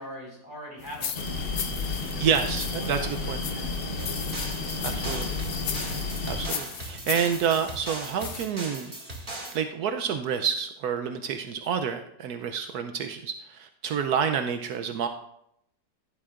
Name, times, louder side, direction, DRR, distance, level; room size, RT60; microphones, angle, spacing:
voice 1, 0.0-2.5 2.7-3.1 3.5-4.0 4.9-5.2, equal, 15° left, -3 dB, 4.3 m, -43 dB
sound 1, 0.8-8.5, left 8 dB, 60° left, 1.0 m, -38 dB
sound 2, 1.1-6.5, left 3 dB, 40° left, 1.2 m, -32 dB
voice 2, 2.2-3.4 4.8-5.3 6.3-8.9 9.5-15.1, right 7 dB, 75° right, 7 dB, 1.1 m, -28 dB
sound 3, 4.0-9.6, right 1 dB, 30° right, 2.3 m, -39 dB
16.0 x 10.5 x 2.5 m, 0.77 s
omnidirectional pair, 1.7 m